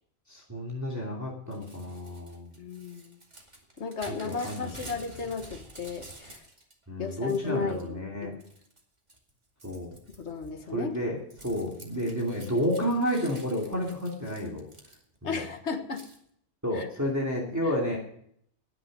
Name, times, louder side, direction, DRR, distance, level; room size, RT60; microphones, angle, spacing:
voice 1, 0.3-2.5 4.1-4.9 6.9-8.4 9.6-9.9 10.7-14.6 15.2-15.4 16.6-18.0, equal, 15° right, -4 dB, 2.6 m, -31 dB
Crumpling crinkling / Tearing, 1.5-6.7 7.1-7.9 8.4-8.8 9.1-15.3 15.9-16.2, right 1 dB, 40° right, 2.5 m, -50 dB
voice 2, 2.6-3.2 3.8-6.4 7.0-8.3 10.2-11.0 15.2-16.0 16.7-16.9, left 5 dB, 70° left, 6 dB, 1.7 m, -34 dB
19.5 x 6.9 x 5.3 m, 0.66 s
omnidirectional pair, 1.2 m